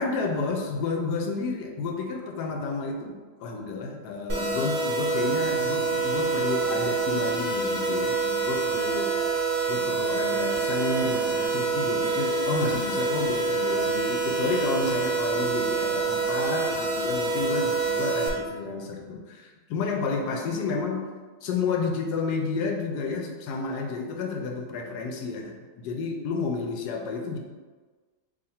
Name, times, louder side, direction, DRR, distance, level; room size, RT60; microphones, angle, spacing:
voice 1, 0.0-9.1 9.7-21.1 21.4-25.5 25.8-27.4, left 4 dB, 80° left, 2 dB, 1.1 m, -31 dB
sound 1, 4.3-18.3, right 4 dB, 85° right, 0.4 m, -26 dB
2.9 x 2.5 x 4.2 m, 1.4 s
omnidirectional pair, 1.7 m